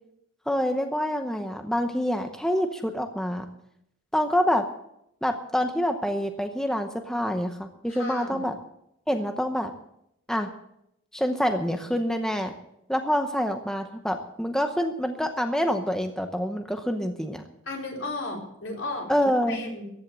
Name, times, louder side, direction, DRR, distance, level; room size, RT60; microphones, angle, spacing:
voice 1, 0.5-3.5 4.1-4.7 5.2-8.6 9.1-9.7 10.3-10.5 11.1-12.5 12.9-17.4 19.1-19.7, equal, 5° left, 5 dB, 0.8 m, -26 dB
voice 2, 7.9-8.4 17.7-19.1 19.5-19.8, left 2 dB, 65° left, 0 dB, 4.3 m, -34 dB
14.5 x 10.5 x 7.4 m, 0.78 s
head